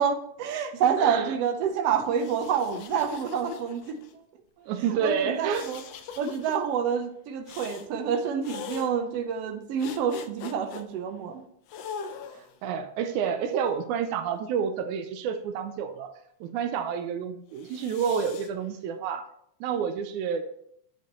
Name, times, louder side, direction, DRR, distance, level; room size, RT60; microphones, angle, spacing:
voice 1, 0.0-4.0 5.0-5.8 6.2-11.4, right 7 dB, 65° right, 6 dB, 1.7 m, -28 dB
voice 2, 1.0-1.3 4.6-5.7 12.3-16.1 16.4-19.3 19.6-20.4, right 7 dB, 85° right, 8 dB, 2.1 m, -29 dB
sound 1, 2.1-4.1 5.5-6.6 7.5-7.9 8.4-8.9 9.8-10.8 11.7-12.6 13.4-14.5 17.6-18.5, left 6 dB, 70° left, 1.6 m, -41 dB
10.5 x 6.9 x 3.1 m, 0.70 s
omnidirectional pair, 3.4 m